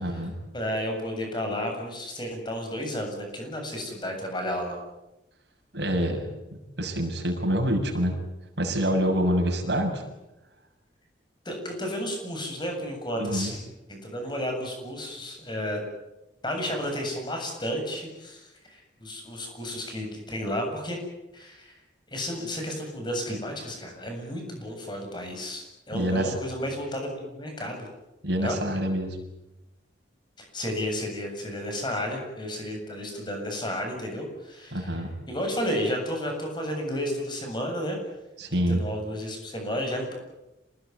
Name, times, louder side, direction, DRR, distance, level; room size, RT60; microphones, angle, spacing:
voice 1, 0.0-0.3 5.7-6.3 6.8-8.2 8.6-10.0 13.2-13.5 25.9-26.4 28.2-29.2 34.7-35.1 38.4-38.8, equal, 65° right, 2 dB, 6.8 m, -26 dB
voice 2, 0.5-4.8 11.4-13.6 13.9-15.8 16.4-21.0 21.3-21.7 22.1-27.9 28.4-28.6 30.4-38.0 38.7-40.1, equal, 25° left, 3 dB, 7.7 m, -32 dB
27.5 x 20.0 x 9.5 m, 0.97 s
head